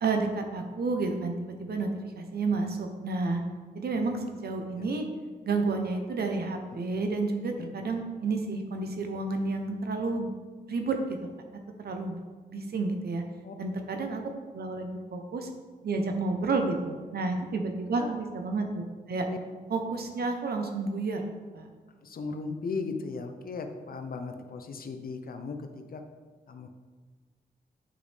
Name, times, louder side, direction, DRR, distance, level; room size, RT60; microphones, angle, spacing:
voice 1, 0.0-1.9 2.2-3.4 3.7-5.1 5.5-10.3 10.7-11.0 11.8-12.2 12.5-13.2 13.6-14.2 14.5-15.5 15.8-18.8 19.1-19.3 19.7-21.2 21.5-21.7, right 3 dB, 75° right, 4 dB, 1.0 m, -30 dB
voice 2, 22.0-26.0 26.5-26.7, left 4 dB, 65° left, 6 dB, 0.7 m, -37 dB
8.6 x 5.0 x 3.5 m, 1.4 s
cardioid pair, 60°, 17 cm